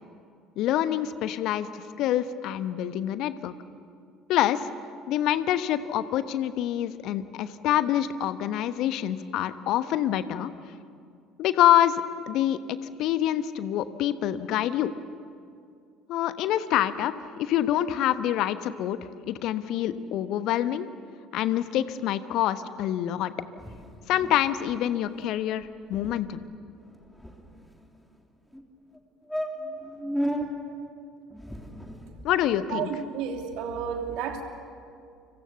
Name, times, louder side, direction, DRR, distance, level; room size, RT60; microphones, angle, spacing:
voice 1, 0.6-3.5 4.3-4.7 5.1-10.5 11.4-14.9 16.1-19.0 19.3-20.9 21.3-23.3 24.1-26.5 32.2-32.9, left 12 dB, 55° left, 12 dB, 1.1 m, -26 dB
sound 1, 23.6-24.4 24.7-24.8 25.1-25.4 25.6-25.7 25.9-26.2 26.8-27.9 28.5-28.6 28.9-29.0 29.3-30.5 31.3-32.3, equal, 5° left, 3.6 m, -34 dB
voice 2, 32.7-34.4, right 7 dB, 60° right, 4 dB, 2.9 m, -31 dB
30.0 x 25.5 x 7.0 m, 2.4 s
figure-of-eight pair, 60°, 0 cm